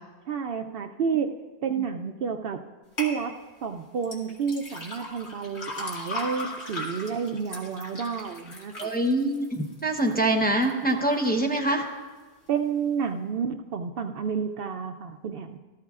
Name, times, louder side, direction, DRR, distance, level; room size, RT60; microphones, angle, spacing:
voice 1, 0.3-1.3 1.6-2.6 3.0-3.3 3.6-8.9 12.5-15.6, right 6 dB, 65° right, 7 dB, 0.7 m, -30 dB
sound 1, 3.0-3.1 4.0-10.2 10.6-11.1 11.6-11.7, left 2 dB, 80° left, 2.1 m, -37 dB
voice 2, 8.8-11.9, right 1 dB, 10° left, 1 dB, 0.8 m, -24 dB
17.5 x 13.0 x 2.4 m, 1.3 s
omnidirectional pair, 1.1 m